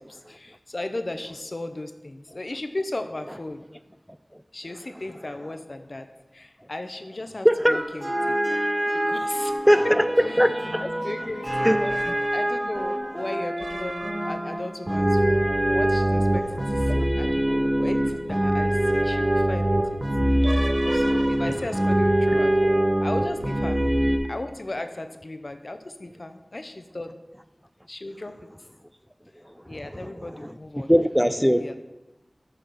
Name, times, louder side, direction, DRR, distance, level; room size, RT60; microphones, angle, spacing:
voice 1, 0.0-3.6 4.5-6.1 6.3-8.4 9.1-9.9 10.3-10.4 10.8-12.0 12.3-19.8 20.3-20.5 20.9-23.9 24.3-27.2 27.9-28.5 29.7-30.9 31.5-31.8, left 2 dB, 55° left, 8 dB, 0.6 m, -36 dB
voice 2, 7.4-7.8 9.7-10.0 10.4-10.8 11.6-11.8 16.9-17.1 30.9-31.8, equal, ahead, 11 dB, 0.3 m, -19 dB
sound 1, 7.7-24.2, right 1 dB, 25° right, 0.9 m, -24 dB
6.6 x 4.1 x 6.1 m, 1.0 s
wide cardioid pair, 45°, 0 cm